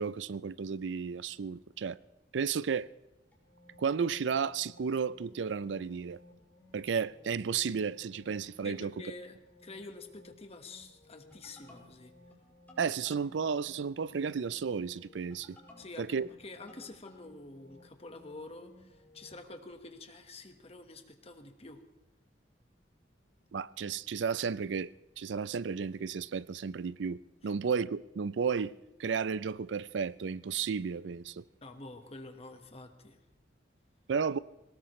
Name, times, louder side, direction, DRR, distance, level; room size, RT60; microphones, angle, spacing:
voice 1, 0.0-2.0 2.3-2.9 3.8-6.2 6.7-8.9 12.8-15.6 16.0-16.3 23.5-24.9 25.2-27.2 27.4-28.7 29.0-31.4 34.1-34.4, right 6 dB, 90° right, 0.4 m, -33 dB
sound 1, 3.3-19.4, left 1 dB, 10° left, 4.8 m, -59 dB
voice 2, 8.6-9.4 9.6-12.1 15.8-21.8 27.4-27.5 31.6-33.2, left 2 dB, 35° left, 1.3 m, -48 dB
21.5 x 18.5 x 3.1 m
head